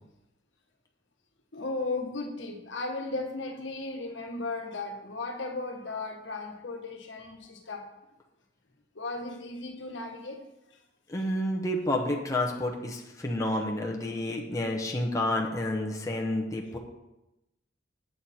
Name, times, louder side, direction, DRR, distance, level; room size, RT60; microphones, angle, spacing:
voice 1, 1.5-7.8 8.9-10.4, left 3 dB, 70° left, 2 dB, 1.3 m, -36 dB
voice 2, 11.1-16.8, left 1 dB, 15° left, -1 dB, 0.9 m, -30 dB
7.9 x 7.5 x 4.3 m, 0.93 s
head